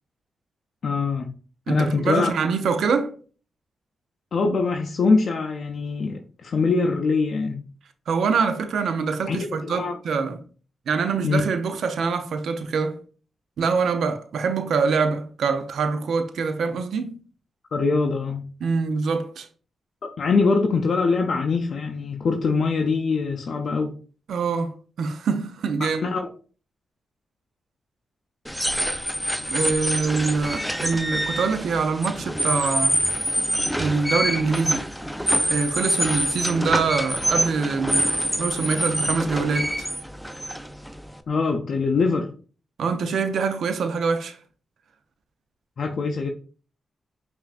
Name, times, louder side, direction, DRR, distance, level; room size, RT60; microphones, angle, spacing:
voice 1, 0.8-1.3 1.7-2.3 4.3-7.7 9.3-10.0 11.2-11.4 17.7-18.5 20.0-23.9 25.8-26.3 41.3-42.3 45.8-46.3, left 4 dB, 65° left, 0.4 m, -23 dB
voice 2, 1.7-3.1 8.1-10.4 10.9-13.0 13.6-17.2 18.6-19.5 24.3-26.1 29.5-33.0 33.8-34.8 35.5-39.7 42.8-44.4, right 5 dB, 75° right, 0.5 m, -24 dB
sound 1, 28.5-41.2, equal, ahead, 0.4 m, -26 dB
5.5 x 2.5 x 2.4 m
cardioid pair, 55°, 0 cm